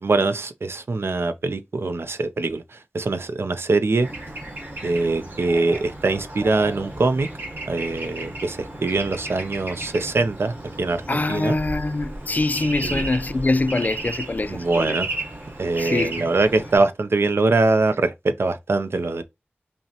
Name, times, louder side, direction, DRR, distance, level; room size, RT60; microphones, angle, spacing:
voice 1, 0.0-4.1 4.8-7.3 7.7-11.6 12.8-13.1 14.4-15.1 15.6-19.2, right 3 dB, 75° right, 0.5 m, -23 dB
Bird / Traffic noise roadway noise, 4.0-16.8, right 2 dB, 55° right, 1.4 m, -34 dB
voice 2, 11.1-15.0 15.8-16.3, left 2 dB, 45° left, 0.3 m, -24 dB
5.4 x 2.1 x 2.8 m
wide cardioid pair, 55°, 4 cm